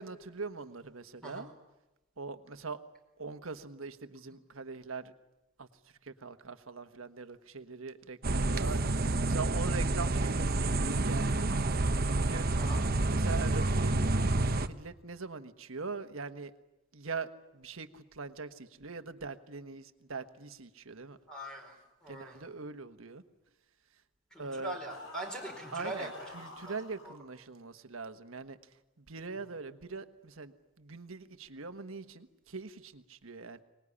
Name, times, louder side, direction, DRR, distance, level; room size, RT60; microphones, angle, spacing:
voice 1, 0.0-1.5 2.2-2.8 3.2-5.1 5.6-5.7 6.0-11.4 12.0-12.5 13.1-14.0 14.6-16.5 16.9-21.2 22.1-23.2 24.4-24.8 25.7-28.6 29.1-30.5 30.8-33.6, right 4 dB, 80° right, 9 dB, 1.4 m, -42 dB
sound 1, 8.2-14.7, right 2 dB, 50° right, 1.0 m, -29 dB
voice 2, 12.6-12.9 21.3-21.7 22.0-22.4 24.3-26.3 26.6-26.7 27.0-27.1, right 1 dB, 5° left, 2 dB, 4.5 m, -42 dB
sound 2, 24.9-27.1, left 2 dB, 85° left, 4.9 m, -49 dB
24.5 x 20.0 x 9.9 m, 0.97 s
head